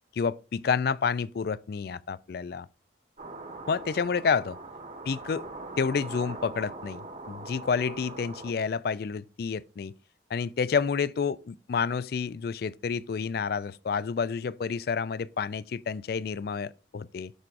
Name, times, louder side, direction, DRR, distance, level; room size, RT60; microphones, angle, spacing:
voice 1, 0.2-2.7 3.7-4.6 5.1-5.5 5.8-9.9 10.3-17.3, left 5 dB, 55° left, 0.3 m, -29 dB
sound 1, 3.2-8.5, right 2 dB, 40° right, 1.2 m, -41 dB
13.0 x 4.6 x 2.5 m
head